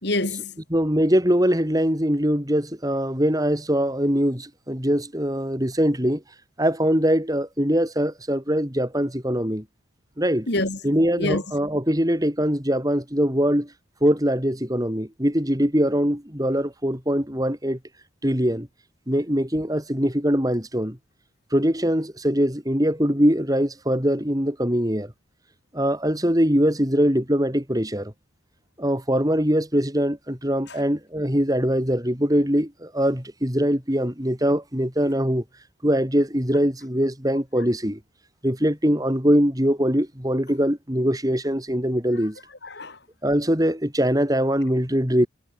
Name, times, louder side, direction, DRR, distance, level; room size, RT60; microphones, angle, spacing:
voice 1, 0.0-0.5 10.5-11.4 30.7-30.8 42.6-43.0, left 2 dB, 55° left, 4.8 m, -27 dB
voice 2, 0.7-6.2 6.6-9.6 10.2-10.5 10.8-13.7 14.0-17.8 18.2-18.7 19.1-21.0 21.5-25.1 25.7-28.1 28.8-35.4 35.8-38.0 38.4-42.4 43.2-45.3, equal, 20° right, 4.4 m, -22 dB
head